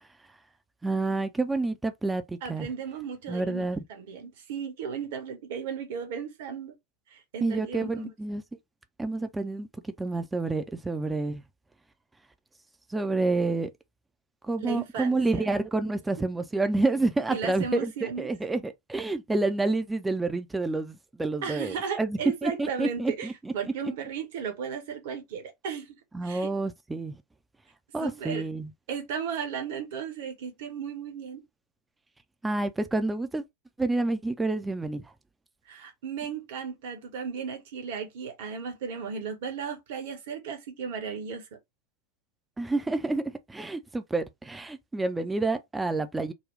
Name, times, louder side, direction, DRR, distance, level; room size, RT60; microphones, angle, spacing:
voice 1, 0.8-2.7 3.3-3.8 7.4-8.4 9.0-11.4 12.9-13.7 14.4-23.5 26.1-27.2 27.9-28.7 32.4-33.4 33.8-35.0 42.6-46.3, right 2 dB, 10° right, 0.5 m, -28 dB
voice 2, 2.4-6.7 7.1-8.1 14.6-15.5 17.3-18.3 21.4-23.3 23.5-25.9 26.2-26.5 28.0-28.5 28.9-31.4 35.7-41.5, right 6 dB, 55° right, 1.1 m, -35 dB
4.1 x 2.2 x 3.2 m
figure-of-eight pair, 90°, 0 cm